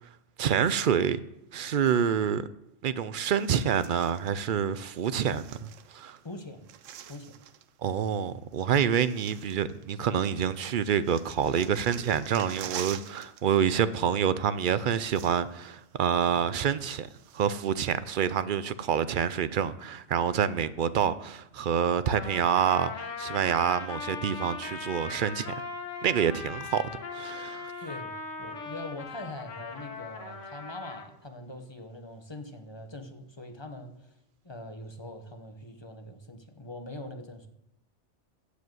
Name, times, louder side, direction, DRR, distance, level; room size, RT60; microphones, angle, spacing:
voice 1, 0.4-1.2 1.5-2.5 2.8-6.2 7.8-17.1 17.3-22.9 23.2-25.5 26.0-26.8 27.1-27.7, right 8 dB, 60° right, 0.5 m, -27 dB
sound 1, 3.3-4.3 5.1-6.2 6.4-7.7 8.5-8.6 9.0-10.1 10.4-13.4 13.7-13.9 14.6-14.7 14.9-15.7 16.1-16.2 16.7-17.6 18.1-18.2, right 10 dB, 85° right, 1.0 m, -45 dB
voice 2, 6.2-6.7 7.1-7.4 27.8-34.1 34.4-37.5, left 1 dB, 25° left, 1.0 m, -43 dB
Trumpet, 22.1-31.1, left 4 dB, 80° left, 1.6 m, -39 dB
15.0 x 5.1 x 7.8 m
omnidirectional pair, 1.3 m